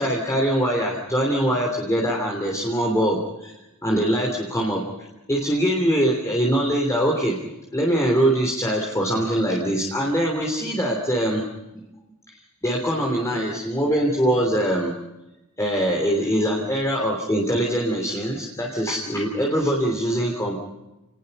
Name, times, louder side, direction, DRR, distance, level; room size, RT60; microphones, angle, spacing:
voice 1, 0.0-3.5 3.8-4.8 5.3-7.4 7.7-11.4 11.7-11.8 12.6-14.9 15.6-20.6, equal, 15° left, 0 dB, 3.1 m, -23 dB
29.0 x 20.0 x 5.4 m, 0.97 s
head